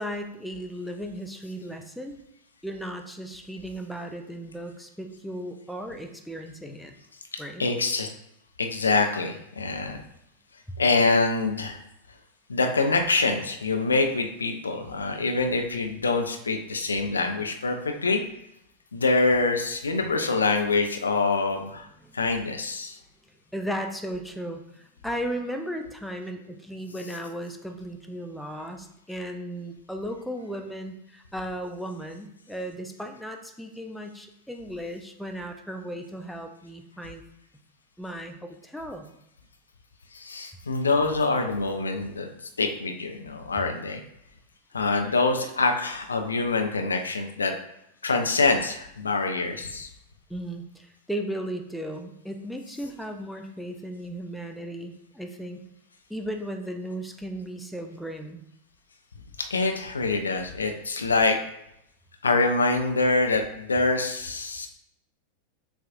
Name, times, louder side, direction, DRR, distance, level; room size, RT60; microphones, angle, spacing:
voice 1, 0.0-2.2 2.6-6.9 7.4-7.7 10.7-10.8 21.8-22.1 23.2-37.2 38.0-39.1 50.3-55.6 56.1-58.4, equal, ahead, 4 dB, 0.5 m, -36 dB
voice 2, 7.3-8.1 8.6-10.0 10.8-11.8 12.5-18.2 18.9-21.9 22.1-23.0 40.1-42.3 42.6-44.0 44.7-47.5 48.0-49.9 59.4-61.4 62.2-64.7, left 3 dB, 75° left, 4 dB, 0.5 m, -25 dB
6.8 x 2.4 x 2.5 m, 0.79 s
figure-of-eight pair, 90°, 0 cm